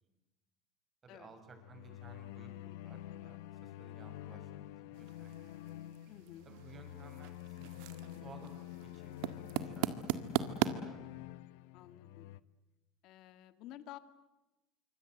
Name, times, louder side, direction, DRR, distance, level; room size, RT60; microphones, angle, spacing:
voice 1, 1.0-5.4 6.4-8.6 8.9-11.4, right 4 dB, 30° right, 6 dB, 6.8 m, -57 dB
sound 1, 1.4-12.4, left 14 dB, 85° left, 0.9 m, -48 dB
sound 2, 4.9-10.7, right 12 dB, 80° right, 1.7 m, -39 dB
voice 2, 6.1-6.5 11.7-12.3 13.0-14.0, left 13 dB, 60° left, 12 dB, 2.1 m, -52 dB
26.5 x 24.5 x 8.0 m, 1.0 s
cardioid pair, 130°, 0 cm